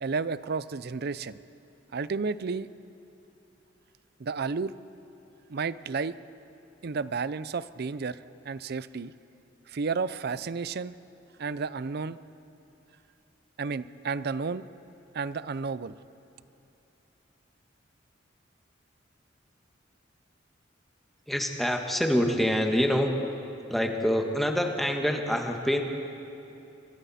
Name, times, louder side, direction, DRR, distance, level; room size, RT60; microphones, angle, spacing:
voice 1, 0.0-1.4 1.9-2.7 4.2-4.8 5.5-6.2 6.8-8.2 8.4-9.1 9.7-10.9 11.4-12.2 13.6-14.7 15.1-16.0, right 4 dB, 55° right, 16 dB, 0.5 m, -32 dB
voice 2, 21.3-23.2 23.7-25.8, equal, ahead, 2 dB, 1.5 m, -26 dB
28.0 x 23.5 x 4.3 m, 2.9 s
head